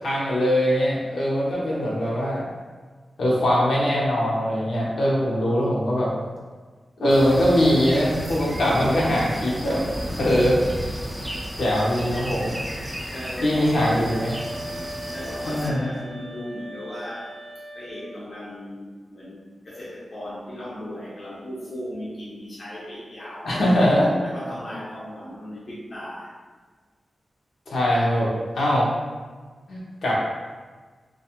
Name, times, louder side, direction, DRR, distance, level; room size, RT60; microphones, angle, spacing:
voice 1, 0.0-2.4 3.2-6.1 7.0-9.8 10.2-10.6 11.6-12.6 13.4-14.4 15.5-15.9 23.4-24.1 27.7-28.3 28.5-28.9 29.7-30.1, equal, 85° left, -6 dB, 0.7 m, -21 dB
sound 1, 7.1-15.7, equal, 5° right, 0.4 m, -33 dB
voice 2, 13.1-13.9 15.1-23.6 24.2-26.3, left 1 dB, 50° left, -7 dB, 0.5 m, -37 dB
sound 2, 14.1-18.2, right 1 dB, 75° right, 0.3 m, -39 dB
2.4 x 2.3 x 2.8 m, 1.4 s
wide cardioid pair, 115°, 0 cm